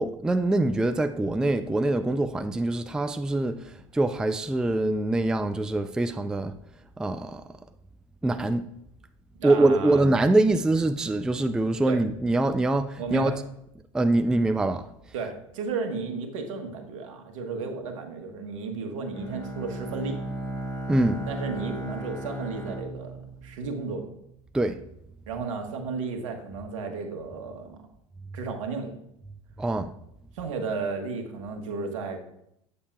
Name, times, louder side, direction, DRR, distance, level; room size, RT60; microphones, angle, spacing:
voice 1, 0.0-6.5 7.0-7.4 8.2-8.7 9.4-13.3 13.9-14.9 20.9-21.2 24.5-24.8 29.6-29.9, right 2 dB, 5° right, 0.3 m, -24 dB
voice 2, 9.4-10.0 11.9-12.0 13.0-13.3 15.1-20.2 21.3-24.1 25.3-27.9 28.3-28.9 30.3-32.2, right 4 dB, 70° right, 1.2 m, -33 dB
Bowed string instrument, 19.1-24.1, right 1 dB, 25° left, 2.0 m, -36 dB
8.4 x 6.6 x 2.3 m
hypercardioid pair, 80°, 17 cm